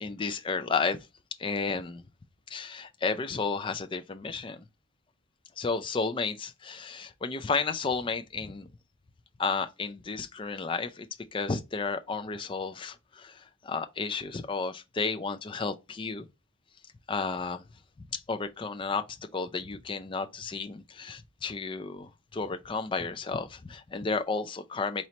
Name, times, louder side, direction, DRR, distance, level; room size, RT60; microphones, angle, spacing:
voice 1, 0.0-1.0 1.4-2.0 2.5-4.6 5.6-8.7 9.4-11.1 11.3-13.3 13.6-16.3 17.1-17.6 18.1-19.0 19.3-25.1, left 4 dB, 25° left, 0.3 m, -32 dB
4.3 x 3.0 x 2.7 m
head